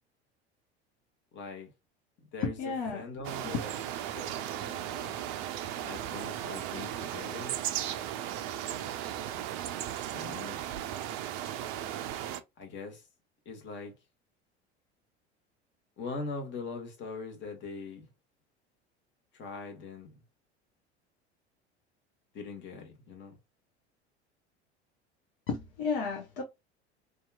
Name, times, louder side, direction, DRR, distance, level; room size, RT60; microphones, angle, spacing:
voice 1, 1.3-1.7 2.2-3.8 4.2-5.2 5.8-7.5 10.1-10.6 12.6-13.1 13.4-13.9 16.0-18.1 19.3-20.2 22.3-23.4, left 3 dB, 35° left, 1.0 m, -42 dB
voice 2, 2.4-3.0 3.4-3.6 25.5-26.4, left 5 dB, 55° left, 0.8 m, -32 dB
sound 1, 3.2-12.4, right 11 dB, 45° right, 0.4 m, -36 dB
2.7 x 2.3 x 2.2 m
figure-of-eight pair, 70°, 34 cm